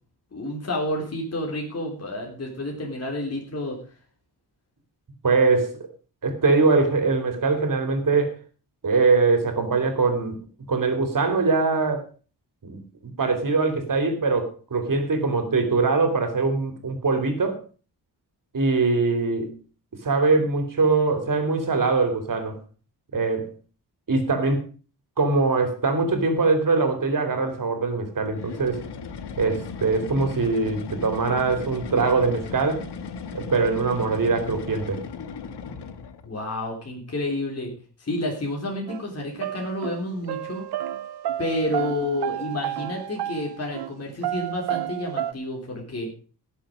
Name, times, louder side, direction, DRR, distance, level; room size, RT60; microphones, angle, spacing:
voice 1, 0.3-3.8 36.2-37.7 38.0-40.6 41.4-46.1, left 1 dB, 40° left, -1 dB, 3.5 m, -30 dB
voice 2, 5.2-5.9 6.2-8.4 8.8-10.4 10.7-12.1 12.6-12.8 13.2-17.6 18.5-19.5 20.0-22.6 23.1-23.5 24.1-24.6 25.2-28.8 29.4-32.9 33.3-35.0, right 4 dB, 55° right, 7 dB, 3.1 m, -22 dB
sound 1, 28.3-36.3, left 5 dB, 85° left, 1.3 m, -36 dB
sound 2, 38.9-39.0 39.4-43.9 44.2-45.3, right 12 dB, 70° right, 0.6 m, -31 dB
17.5 x 7.1 x 5.0 m, 0.37 s
wide cardioid pair, 110°, 40 cm